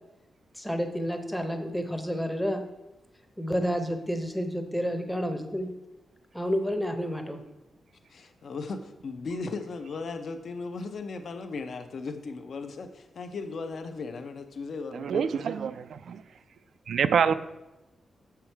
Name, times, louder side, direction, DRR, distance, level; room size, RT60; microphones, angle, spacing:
voice 1, 0.5-2.6 3.4-5.7 6.3-7.4, equal, 5° left, 6 dB, 0.7 m, -30 dB
voice 2, 8.1-15.6, left 4 dB, 50° left, 7 dB, 0.6 m, -37 dB
voice 3, 14.9-16.2 16.9-17.3, right 7 dB, 70° right, 12 dB, 0.3 m, -26 dB
7.2 x 5.8 x 4.5 m, 1.0 s
wide cardioid pair, 175°, 0 cm